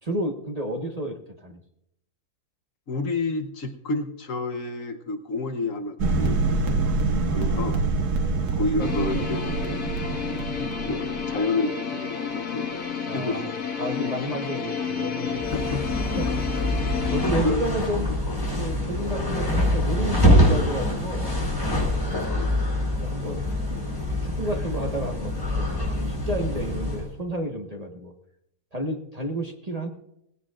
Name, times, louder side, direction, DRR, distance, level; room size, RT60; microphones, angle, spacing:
voice 1, 0.0-1.6 7.2-7.8 8.2-8.4 13.1-13.5 13.8-16.5 17.0-18.2 18.6-21.4 23.0-23.4 23.7-23.8 24.2-28.1 28.7-29.9, right 1 dB, 25° right, 2 dB, 1.4 m, -31 dB
voice 2, 2.9-7.0 7.3-7.8 8.4-9.8 10.6-13.4 15.3-16.0 17.4-17.6 22.3-22.8, left 3 dB, 60° left, 6 dB, 1.4 m, -30 dB
sound 1, 6.0-11.4, right 3 dB, 85° right, 1.8 m, -26 dB
sound 2, 8.8-17.3, left 6 dB, 75° left, 2.1 m, -31 dB
sound 3, 15.3-27.1, left 1 dB, 15° left, 4.6 m, -25 dB
18.0 x 16.5 x 2.5 m, 0.78 s
omnidirectional pair, 1.6 m